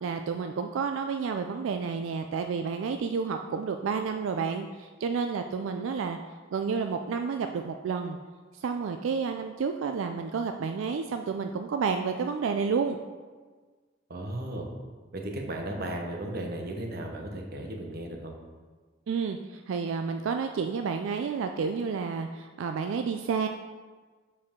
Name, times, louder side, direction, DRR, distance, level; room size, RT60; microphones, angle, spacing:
voice 1, 0.0-6.2 6.5-8.2 8.6-13.0 19.1-23.5, right 5 dB, 85° right, 6 dB, 0.3 m, -30 dB
voice 2, 14.1-14.7 15.1-18.3, right 1 dB, 55° right, 2 dB, 0.9 m, -35 dB
7.2 x 4.7 x 3.6 m, 1.4 s
head